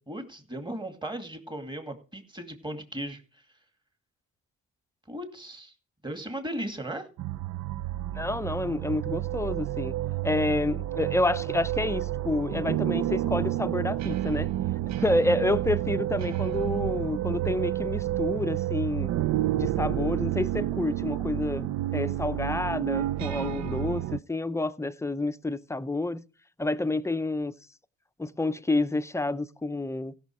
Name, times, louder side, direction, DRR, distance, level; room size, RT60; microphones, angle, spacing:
voice 1, 0.1-3.2 5.1-5.7 6.0-7.1, right 1 dB, 15° right, 2.3 m, -36 dB
sound 1, 7.2-24.2, right 13 dB, 65° right, 0.5 m, -30 dB
voice 2, 8.1-9.9 10.2-14.5 14.9-19.1 19.5-26.2 26.6-27.5 28.2-30.1, left 2 dB, 10° left, 0.6 m, -29 dB
16.0 x 6.2 x 4.8 m
cardioid pair, 90°, 30 cm